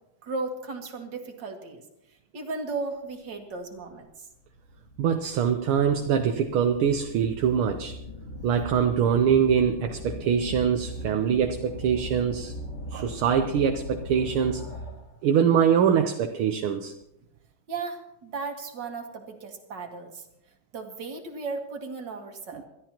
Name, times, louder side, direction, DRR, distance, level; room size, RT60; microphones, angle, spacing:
voice 1, 0.2-1.8 2.3-4.3 17.7-20.3 20.7-22.6, right 3 dB, 55° right, 3 dB, 2.3 m, -35 dB
sound 1, 3.7-3.8 4.5-15.2, equal, 90° left, 3.4 m, -39 dB
voice 2, 5.0-7.9 8.4-12.5 12.9-14.6 15.2-16.9, right 8 dB, 75° right, 5 dB, 1.6 m, -23 dB
28.5 x 13.0 x 3.0 m, 0.88 s
omnidirectional pair, 2.4 m